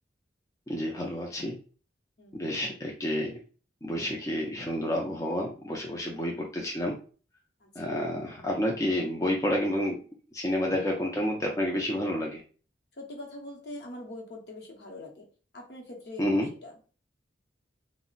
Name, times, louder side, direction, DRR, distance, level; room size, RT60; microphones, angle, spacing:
voice 1, 0.7-1.6 2.3-3.4 3.8-7.0 7.8-10.0 10.3-12.4 16.2-16.5, left 1 dB, 15° left, -1 dB, 0.4 m, -29 dB
voice 2, 2.2-2.5 7.6-8.0 13.0-15.3 15.5-16.2 16.6-16.7, left 1 dB, 60° left, 0 dB, 0.8 m, -43 dB
2.4 x 2.0 x 3.7 m, 0.38 s
head